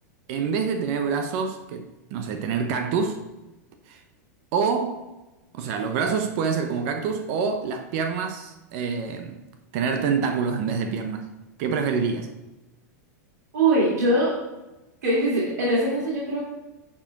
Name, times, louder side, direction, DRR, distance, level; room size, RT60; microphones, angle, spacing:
voice 1, 0.3-3.2 3.9-4.0 4.5-5.0 5.5-9.4 9.7-11.3 11.6-12.3, right 5 dB, 55° right, 0.7 m, -26 dB
voice 2, 13.5-14.3 15.0-16.4, right 1 dB, 80° right, 2.6 m, -22 dB
8.7 x 4.5 x 4.6 m
hypercardioid pair, 125°, 9 cm